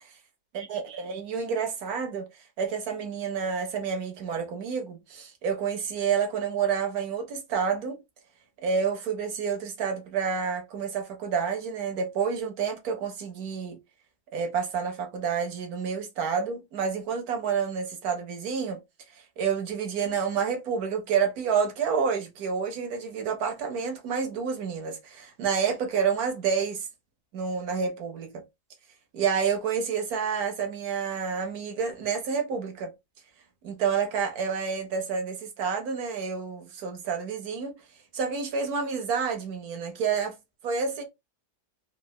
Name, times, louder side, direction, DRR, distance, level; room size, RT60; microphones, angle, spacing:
voice 1, 0.5-8.0 8.6-13.8 14.3-18.8 19.1-26.9 27.3-28.4 29.1-32.9 33.6-37.7 38.1-40.3 40.6-41.0, right 6 dB, 70° right, 1.4 m, -29 dB
3.9 x 2.2 x 2.3 m
omnidirectional pair, 1.7 m